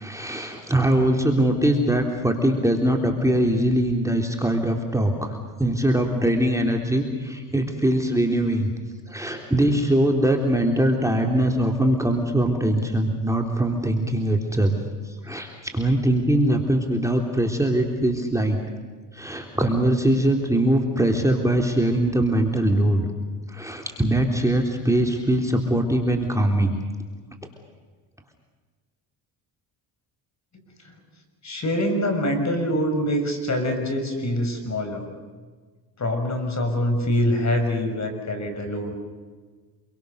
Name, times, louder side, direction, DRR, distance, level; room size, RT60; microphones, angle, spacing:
voice 1, 0.0-8.7 9.1-14.8 15.0-18.6 19.1-23.1 23.5-26.8, right 1 dB, 5° right, 2 dB, 3.5 m, -22 dB
voice 2, 31.4-35.1 36.0-39.0, left 1 dB, 35° left, 6 dB, 6.2 m, -24 dB
27.0 x 24.0 x 6.7 m, 1.5 s
supercardioid pair, 75°, 45 cm